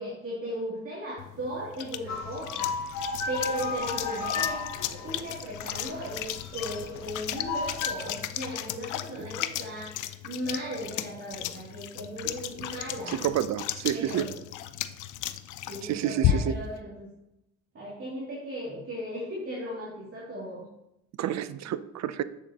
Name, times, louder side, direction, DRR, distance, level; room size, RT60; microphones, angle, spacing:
voice 1, 0.0-13.1 13.9-14.4 15.7-17.1 17.7-20.6, equal, 45° right, -7 dB, 2.7 m, -37 dB
sound 1, 1.2-16.7, left 12 dB, 80° left, 0.5 m, -35 dB
sound 2, 2.1-7.9, left 4 dB, 65° left, 1.2 m, -34 dB
voice 2, 13.2-14.3 15.8-16.6 21.2-22.2, right 11 dB, 65° right, 15 dB, 0.5 m, -29 dB
7.7 x 6.7 x 2.9 m, 0.87 s
cardioid pair, 90°, 30 cm